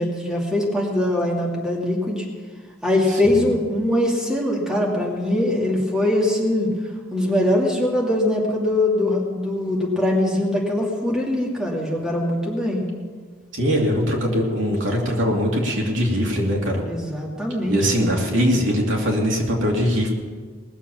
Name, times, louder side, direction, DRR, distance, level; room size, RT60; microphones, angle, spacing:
voice 1, 0.0-2.3 2.8-6.7 7.1-12.8 16.8-18.1, left 1 dB, 5° right, -3 dB, 2.5 m, -22 dB
voice 2, 13.5-16.8 17.7-20.1, equal, 75° right, -1 dB, 2.8 m, -21 dB
19.5 x 7.3 x 7.2 m, 1.5 s
head